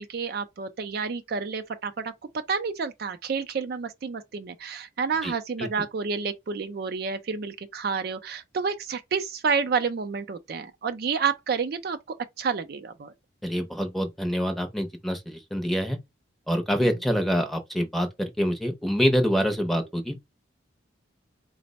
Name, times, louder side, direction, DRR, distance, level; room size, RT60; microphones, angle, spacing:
voice 1, 0.0-12.0 12.4-13.1 16.8-16.9, right 5 dB, 50° right, 0.4 m, -29 dB
voice 2, 13.4-16.0 16.5-20.2, equal, ahead, 0.6 m, -26 dB
4.2 x 2.0 x 3.9 m
head